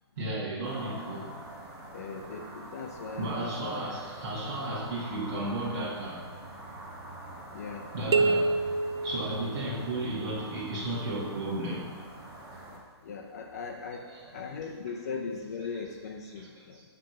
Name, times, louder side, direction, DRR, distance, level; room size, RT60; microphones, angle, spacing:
voice 1, 0.2-1.3 3.1-6.2 7.9-11.9 13.9-14.7 15.9-16.0 16.4-16.8, right 1 dB, 40° right, -9 dB, 1.9 m, -34 dB
sound 1, 0.6-12.8, right 1 dB, 20° right, 1.8 m, -45 dB
voice 2, 1.9-3.8 7.5-7.9 9.4-9.6 13.0-14.0 14.3-16.8, left 5 dB, 35° left, 2 dB, 0.6 m, -39 dB
sound 2, 8.1-10.1, right 3 dB, 70° right, 0.6 m, -27 dB
9.0 x 3.4 x 6.0 m, 1.5 s
hypercardioid pair, 175°, 14 cm